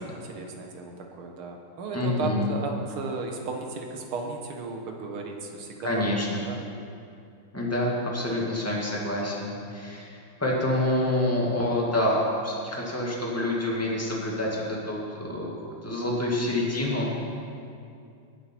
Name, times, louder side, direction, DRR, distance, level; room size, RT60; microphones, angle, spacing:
voice 1, 0.0-6.2 6.5-6.6, right 4 dB, 85° right, 2 dB, 2.1 m, -35 dB
voice 2, 1.9-2.5 5.8-6.4 7.5-15.5 15.8-17.1, left 1 dB, 5° left, -4 dB, 1.9 m, -27 dB
19.0 x 8.0 x 4.5 m, 2.5 s
omnidirectional pair, 2.3 m